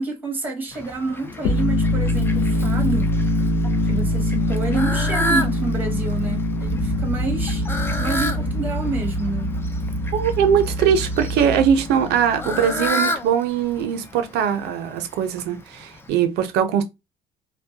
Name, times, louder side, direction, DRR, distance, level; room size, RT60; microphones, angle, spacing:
voice 1, 0.0-3.3 3.8-7.6 8.0-9.6, right 3 dB, 10° right, 0.9 m, -28 dB
Fowl, 0.7-16.1, equal, 15° left, 0.4 m, -32 dB
sound 1, 1.3-12.9, left 2 dB, 70° left, 0.5 m, -24 dB
sound 2, 6.7-11.9, right 1 dB, 35° right, 0.6 m, -29 dB
voice 2, 10.1-16.8, right 8 dB, 80° right, 0.6 m, -21 dB
2.1 x 2.1 x 2.7 m
cardioid pair, 110°, 17 cm